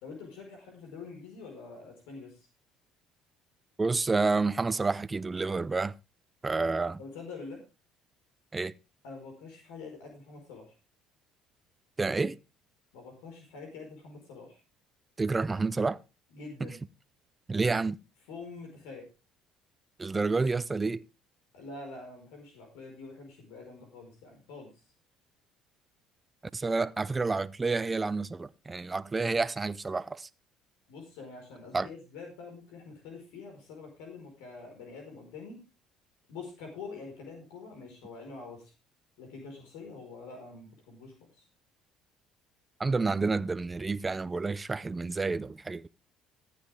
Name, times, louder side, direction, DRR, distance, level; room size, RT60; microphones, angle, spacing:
voice 1, 0.0-2.5 7.0-7.6 9.0-10.7 12.9-14.6 16.3-16.8 18.3-19.1 21.5-24.7 30.9-35.6 36.3-38.7 39.2-41.4, left 4 dB, 80° left, 4.7 m, -45 dB
voice 2, 3.8-5.9 6.4-7.0 8.5-8.7 12.0-12.4 15.2-16.0 16.6-16.7 17.5-18.0 20.0-21.0 26.5-30.3 31.7-31.9 42.8-45.9, right 3 dB, 25° right, 0.6 m, -29 dB
14.5 x 9.7 x 3.5 m
supercardioid pair, 75°, 0 cm